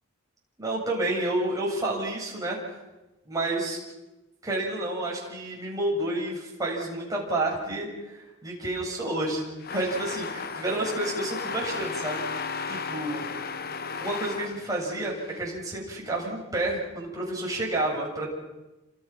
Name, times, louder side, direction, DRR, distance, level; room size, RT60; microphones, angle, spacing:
voice 1, 0.6-2.8 3.3-3.8 4.4-13.2 14.0-18.3, right 1 dB, 15° right, -3 dB, 7.7 m, -30 dB
sound 1, 9.6-15.4, left 5 dB, 45° left, 1.1 m, -35 dB
29.5 x 26.5 x 6.1 m, 1.0 s
head